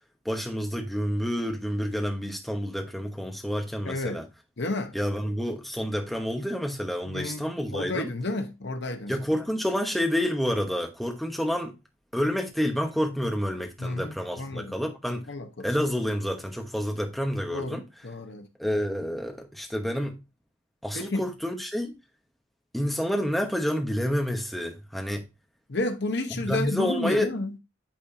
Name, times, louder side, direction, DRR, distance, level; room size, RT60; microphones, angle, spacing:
voice 1, 0.2-4.3 4.9-8.1 9.1-11.8 12.1-15.3 15.6-17.8 18.6-20.2 20.8-21.9 22.7-25.2 26.3-27.3, equal, ahead, 0.9 m, -29 dB
voice 2, 3.8-4.2 4.6-5.0 7.1-7.4 7.7-9.1 13.8-14.7 15.3-15.7 17.5-18.5 20.9-21.2 25.7-27.5, left 2 dB, 50° left, 0.9 m, -31 dB
8.6 x 4.4 x 2.6 m
head